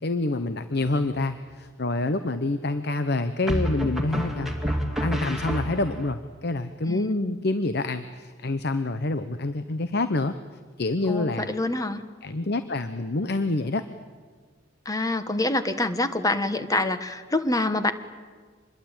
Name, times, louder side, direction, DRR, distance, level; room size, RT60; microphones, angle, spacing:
voice 1, 0.0-10.3 10.8-11.5 12.2-13.8, left 2 dB, 55° left, 10 dB, 0.9 m, -27 dB
sound 1, 0.8-1.4 3.5-6.1, equal, ahead, 2.4 m, -28 dB
voice 2, 6.9-7.4 11.1-12.0 14.8-17.9, left 2 dB, 20° left, 10 dB, 1.2 m, -26 dB
26.0 x 21.5 x 8.9 m, 1.5 s
head